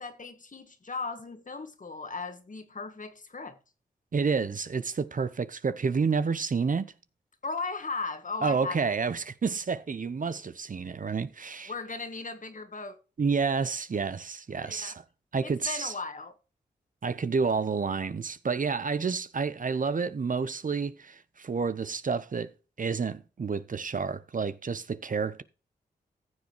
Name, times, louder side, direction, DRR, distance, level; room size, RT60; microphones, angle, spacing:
voice 1, 0.0-3.6 7.4-8.8 11.7-13.0 14.6-15.0 15.4-16.4, left 4 dB, 50° left, 1.8 m, -37 dB
voice 2, 4.1-6.9 8.4-11.7 13.2-15.0 15.3-15.9 17.0-22.5 22.8-25.4, right 5 dB, 50° right, 0.8 m, -29 dB
15.0 x 7.1 x 3.1 m
supercardioid pair, 40°, 18 cm